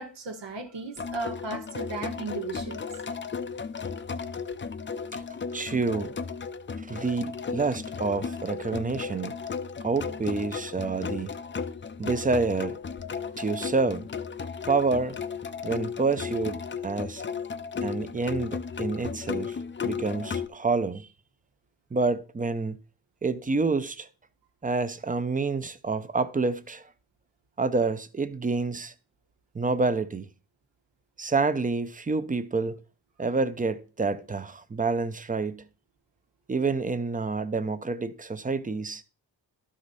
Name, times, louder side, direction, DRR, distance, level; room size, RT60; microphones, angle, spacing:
voice 1, 0.0-2.8, right 3 dB, 80° right, 1.4 m, -36 dB
sound 1, 1.0-20.5, left 6 dB, 25° left, 0.5 m, -35 dB
voice 2, 5.5-6.2 6.8-9.3 9.8-11.3 12.0-12.8 13.4-14.1 14.7-15.2 15.6-17.2 17.8-19.6 19.8-21.1 21.9-22.8 23.2-24.1 24.6-26.9 27.6-28.9 29.5-30.3 31.2-32.8 33.2-35.6 36.5-39.0, right 4 dB, 20° right, 0.6 m, -28 dB
12.0 x 5.0 x 4.1 m
cardioid pair, 90°, 43 cm